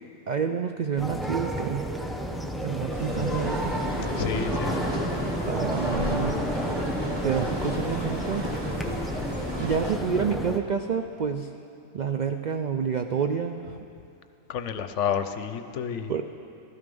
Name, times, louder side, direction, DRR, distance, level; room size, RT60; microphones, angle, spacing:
voice 1, 0.3-1.9 2.6-3.7 5.4-6.4 7.2-8.5 9.6-11.5 11.9-13.6 16.1-16.2, right 6 dB, 80° right, 6 dB, 0.4 m, -28 dB
sound 1, 1.0-10.6, equal, ahead, 0.4 m, -31 dB
sound 2, 2.9-10.0, equal, 20° right, 1.7 m, -33 dB
voice 2, 4.2-4.8 14.5-16.1, left 8 dB, 65° left, 9 dB, 0.9 m, -30 dB
15.0 x 13.0 x 5.4 m, 2.6 s
omnidirectional pair, 1.4 m